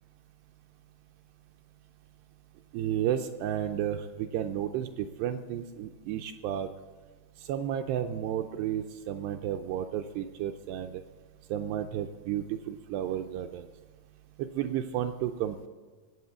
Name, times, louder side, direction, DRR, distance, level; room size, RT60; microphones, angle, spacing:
voice 1, 2.7-6.7 7.4-11.0 11.5-13.7 14.4-15.7, right 10 dB, 80° right, 6 dB, 2.4 m, -32 dB
17.5 x 8.1 x 7.1 m, 1.4 s
omnidirectional pair, 5.2 m